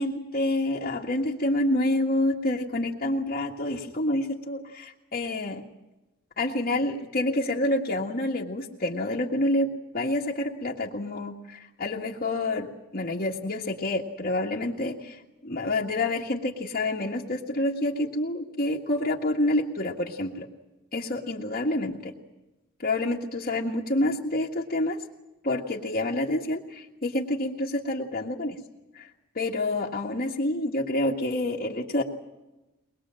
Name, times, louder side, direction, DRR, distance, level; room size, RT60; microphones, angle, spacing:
voice 1, 0.0-5.6 6.4-20.5 20.9-22.1 22.8-25.0 25.4-28.6 28.9-29.1 29.4-32.0, left 1 dB, 40° left, -3 dB, 1.7 m, -28 dB
23.0 x 21.5 x 7.6 m, 1.0 s
head